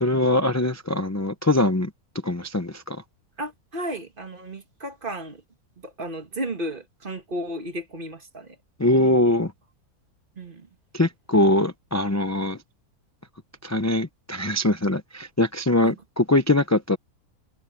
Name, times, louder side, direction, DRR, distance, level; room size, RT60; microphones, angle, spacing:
voice 1, 0.0-1.9 2.2-3.0 8.8-9.5 10.9-12.6 13.6-17.0, left 1 dB, 20° left, 0.4 m, -22 dB
voice 2, 3.4-5.4 5.8-8.6 10.4-10.7 15.8-15.9, right 1 dB, 35° right, 1.9 m, -34 dB
omnidirectional pair, 1.7 m